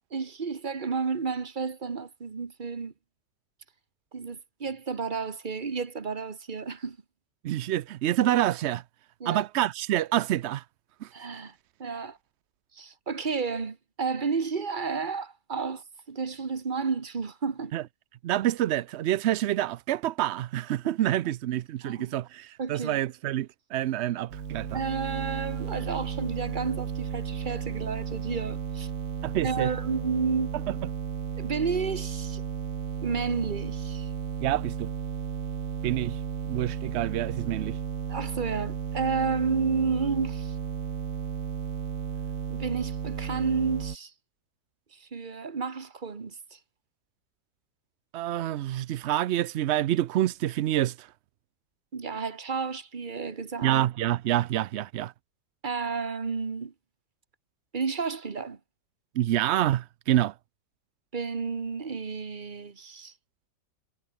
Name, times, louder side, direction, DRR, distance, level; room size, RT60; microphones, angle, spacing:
voice 1, 0.1-2.9 4.1-7.0 9.2-9.4 11.1-11.5 11.8-12.2 12.7-17.7 20.8-20.9 21.8-22.1 22.6-23.0 24.7-28.9 29.4-30.5 31.4-32.4 33.0-34.1 38.1-40.5 42.5-44.1 44.9-46.6 51.9-53.8 55.6-56.7 57.7-58.6 61.1-63.1, right 5 dB, 30° right, 1.4 m, -31 dB
voice 2, 7.4-8.8 9.3-10.6 11.0-11.1 17.7-17.8 18.2-24.8 29.2-29.7 34.4-34.9 35.8-36.2 36.5-37.8 48.1-51.1 53.6-55.1 59.2-60.3, right 13 dB, 90° right, 0.6 m, -27 dB
sound 1, 24.3-44.0, right 7 dB, 55° right, 1.7 m, -34 dB
omnidirectional pair, 1.8 m